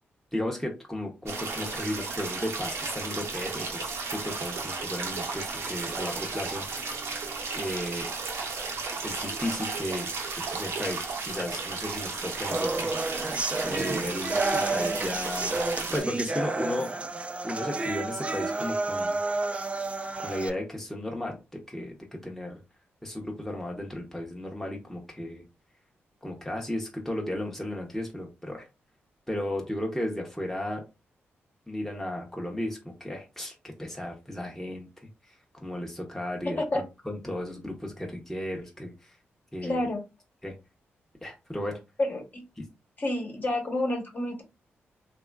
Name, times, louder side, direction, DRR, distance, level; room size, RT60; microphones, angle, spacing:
voice 1, 0.3-6.8 7.5-8.1 9.0-10.1 10.4-13.3 13.6-15.6 15.9-16.9 17.4-19.2 20.2-22.6 23.0-25.4 26.2-28.6 29.3-30.8 31.7-34.9 35.6-36.6 37.1-39.1 39.5-39.9 40.4-40.5 41.2-41.8, left 1 dB, 5° left, 0 dB, 0.7 m, -34 dB
sound 1, 1.3-16.0, right 4 dB, 75° right, 0.7 m, -34 dB
sound 2, 12.5-20.5, right 2 dB, 25° right, 0.4 m, -30 dB
voice 2, 39.6-40.0 42.0-42.4 43.0-44.4, left 1 dB, 40° left, 2 dB, 1.0 m, -29 dB
2.9 x 2.3 x 2.3 m, 0.27 s
cardioid pair, 60°, 5 cm